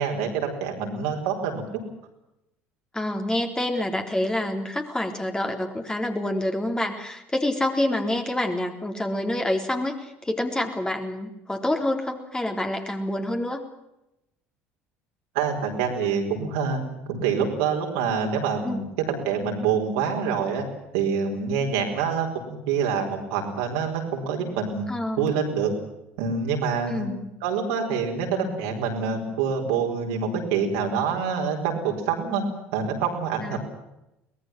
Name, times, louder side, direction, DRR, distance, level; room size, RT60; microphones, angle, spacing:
voice 1, 0.0-1.6 15.3-16.8 17.1-20.6 20.9-24.8 25.2-25.7 26.2-27.1 27.4-32.4 32.7-33.6, right 6 dB, 70° right, 2 dB, 4.8 m, -26 dB
voice 2, 2.9-13.6 18.6-18.8 24.9-25.3 26.9-27.3 33.4-33.6, left 1 dB, 10° left, 4 dB, 3.7 m, -27 dB
23.5 x 19.5 x 7.5 m, 0.88 s
figure-of-eight pair, 60°, 7 cm